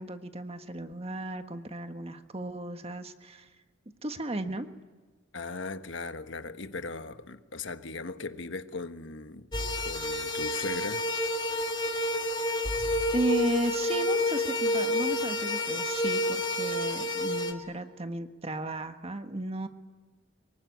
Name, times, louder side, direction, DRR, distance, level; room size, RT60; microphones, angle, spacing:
voice 1, 0.0-3.5 4.0-4.7 13.1-19.7, right 1 dB, 30° right, 1.5 m, -34 dB
voice 2, 5.3-9.5 9.8-11.0, left 3 dB, 70° left, 1.3 m, -38 dB
sound 1, 9.5-17.5, left 1 dB, 25° left, 2.3 m, -29 dB
24.5 x 23.0 x 9.5 m
head